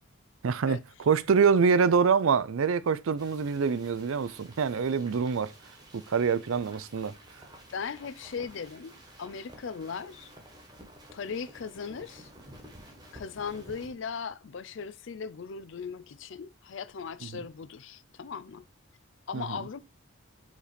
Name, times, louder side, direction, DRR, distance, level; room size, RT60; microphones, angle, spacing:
voice 1, 0.4-5.5 5.9-7.2 19.3-19.6, right 6 dB, 75° right, 0.4 m, -25 dB
sound 1, 3.2-13.9, right 1 dB, 20° right, 1.3 m, -52 dB
voice 2, 7.7-10.3 11.1-12.3 13.1-18.7 19.3-19.8, left 6 dB, 60° left, 0.4 m, -38 dB
5.1 x 4.0 x 5.0 m
head